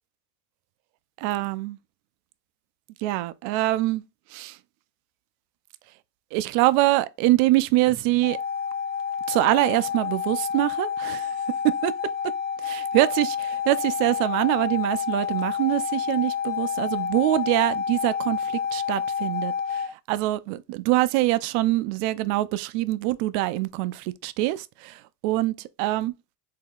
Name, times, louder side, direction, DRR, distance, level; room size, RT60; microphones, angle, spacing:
voice 1, 1.2-1.8 3.0-4.0 4.3-4.6 6.3-8.4 9.3-11.3 11.6-11.9 12.2-12.3 12.6-26.1, right 17 dB, 60° right, 0.5 m, -24 dB
sound 1, 7.8-8.3 8.8-9.1 9.8-9.9 10.5-10.6 10.8-10.9 11.5-11.6 11.9-12.3 13.4-13.5 13.7-14.0 15.1-15.4, left 2 dB, ahead, 0.9 m, -49 dB
sound 2, 8.2-19.9, left 7 dB, 20° left, 0.5 m, -29 dB
3.7 x 2.8 x 2.3 m
supercardioid pair, 100°, 50 cm